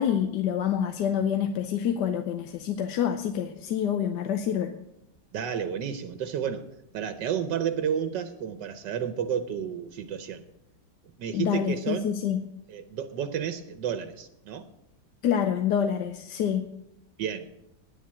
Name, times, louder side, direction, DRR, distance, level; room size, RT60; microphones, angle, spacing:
voice 1, 0.0-4.7 11.3-12.4 15.2-16.7, left 9 dB, 75° left, 7 dB, 1.3 m, -27 dB
voice 2, 5.3-10.4 11.0-12.2 12.7-14.6 17.2-17.5, right 8 dB, 85° right, 10 dB, 1.5 m, -31 dB
9.5 x 9.1 x 8.7 m, 0.86 s
omnidirectional pair, 1.9 m